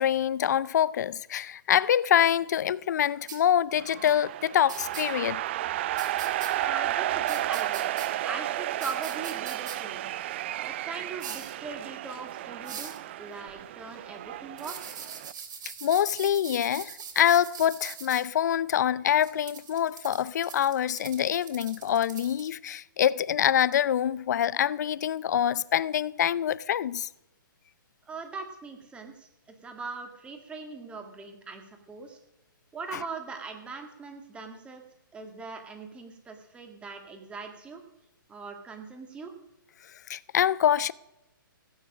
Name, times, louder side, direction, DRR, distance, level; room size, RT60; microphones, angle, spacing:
voice 1, 0.0-5.4 15.8-27.1 40.1-40.9, left 10 dB, 50° left, 0.5 m, -25 dB
sound 1, 3.3-3.4 4.7-5.0 6.0-6.5 7.3-8.1 8.8-9.8 11.2-11.5 12.6-13.0 14.6-18.2 19.2-22.5, right 7 dB, 55° right, 3.2 m, -42 dB
sound 2, 3.8-15.3, right 14 dB, 30° right, 0.4 m, -33 dB
voice 2, 6.6-7.9 8.2-10.1 10.6-14.8 28.1-29.3 29.6-32.2 32.7-34.8 35.1-37.8 38.3-39.3, right 4 dB, 10° right, 1.8 m, -40 dB
17.0 x 9.3 x 6.2 m
hypercardioid pair, 155°, 12 cm